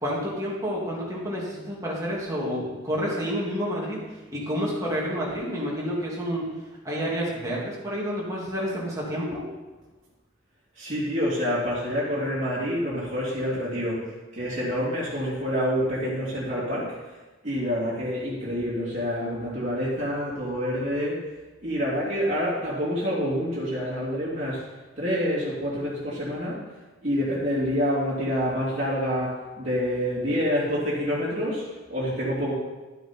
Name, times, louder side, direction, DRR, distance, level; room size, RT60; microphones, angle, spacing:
voice 1, 0.0-6.5 6.8-9.4, equal, 15° right, -5 dB, 2.6 m, -29 dB
voice 2, 10.7-17.0 17.4-21.2 21.6-24.6 25.0-26.6 27.0-32.5, equal, 35° right, -9 dB, 2.9 m, -27 dB
12.0 x 8.1 x 4.6 m, 1.2 s
head